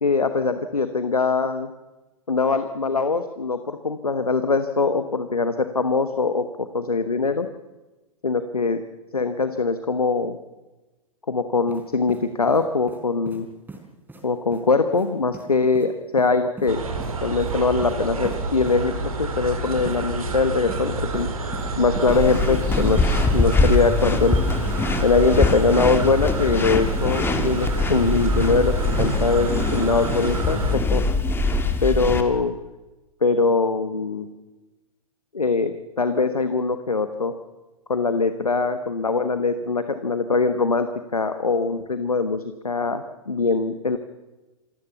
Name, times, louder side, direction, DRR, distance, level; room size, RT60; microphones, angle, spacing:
voice 1, 0.0-1.7 2.3-7.5 8.2-8.8 9.1-10.4 11.3-13.5 14.2-16.9 17.2-21.3 21.7-23.0 23.3-24.4 25.0-31.0 31.8-32.6 33.2-34.3 35.3-37.3 37.9-44.0, left 4 dB, 85° left, 10 dB, 1.3 m, -22 dB
sound 1, 11.7-11.8 12.1-13.0 13.3-13.4 13.7-13.8 14.1-14.2 14.5-14.6 14.9-15.1 15.3-15.5 15.7-15.9 16.2-16.7 17.0-17.1 17.4-17.5 17.8-17.9 18.2-18.4 18.7-18.8 19.9-20.0 20.3-20.8 21.1-21.7 22.0-22.5 22.8-22.9, right 3 dB, 10° right, 4.5 m, -39 dB
sound 2, 16.7-30.8, right 3 dB, 75° right, 3.7 m, -29 dB
sound 3, 22.1-32.2, left 3 dB, 10° left, 2.1 m, -23 dB
27.5 x 15.5 x 7.0 m, 1.1 s
figure-of-eight pair, 105°, 18 cm